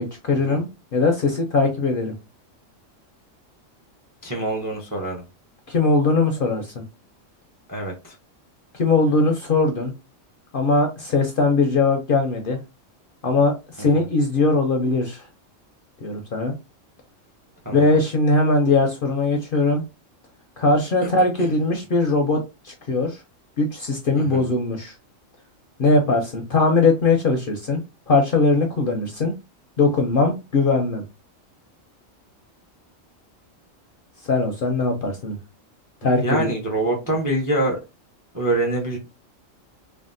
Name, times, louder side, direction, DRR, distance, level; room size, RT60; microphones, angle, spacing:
voice 1, 0.0-2.1 5.7-6.8 8.7-9.9 10.5-12.6 13.2-15.2 16.0-16.5 17.7-19.8 20.6-23.2 23.6-24.9 25.8-27.8 28.1-29.3 29.8-31.0 34.3-35.4 36.0-36.5, left 3 dB, 55° left, 3 dB, 0.6 m, -20 dB
voice 2, 4.2-5.2 7.7-8.1 13.8-14.1 17.6-18.0 21.0-21.1 21.4-21.5 24.2-24.5 36.0-37.8 38.3-39.0, right 1 dB, 25° right, 1 dB, 0.4 m, -25 dB
3.4 x 2.1 x 2.5 m, 0.26 s
omnidirectional pair, 1.4 m